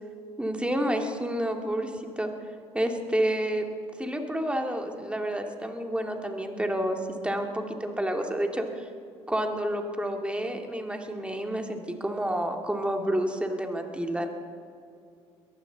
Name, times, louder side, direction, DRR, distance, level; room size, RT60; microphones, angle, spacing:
voice 1, 0.4-2.3 2.7-3.6 4.0-8.9 9.3-14.3, right 1 dB, 5° right, 4 dB, 2.3 m, -29 dB
21.5 x 15.0 x 4.0 m, 2.4 s
hypercardioid pair, 60°, 14 cm